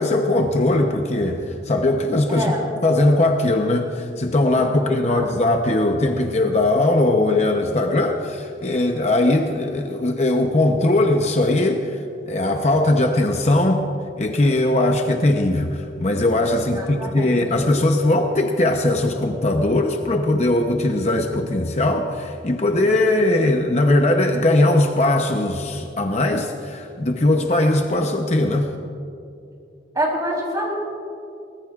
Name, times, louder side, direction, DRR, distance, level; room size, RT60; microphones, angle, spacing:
voice 1, 0.0-2.5 2.8-13.9 14.2-28.7, left 2 dB, 40° left, 3 dB, 0.8 m, -20 dB
voice 2, 2.3-2.7 4.5-5.3 16.5-17.4 29.9-30.7, equal, 20° right, -2 dB, 3.6 m, -27 dB
23.0 x 19.0 x 2.4 m, 2.5 s
head